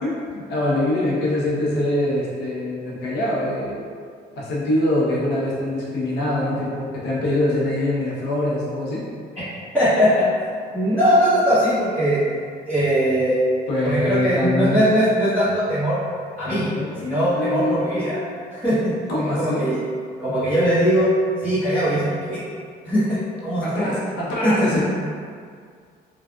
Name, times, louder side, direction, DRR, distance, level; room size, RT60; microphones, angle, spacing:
voice 1, 0.0-3.8 4.4-9.0 13.7-14.8 16.4-17.9 19.1-19.6 23.6-24.9, left 1 dB, 85° left, -6 dB, 0.9 m, -24 dB
voice 2, 9.7-10.3 10.7-12.2 12.7-13.4 13.8-16.0 16.4-16.7 17.0-18.2 18.5-18.9 19.3-19.8 20.2-21.1 21.4-22.4 22.8-23.2 23.4-24.0 24.4-24.7, equal, 10° left, -17 dB, 1.3 m, -20 dB
3.4 x 2.5 x 2.4 m, 2.1 s
cardioid pair, 110°, 17 cm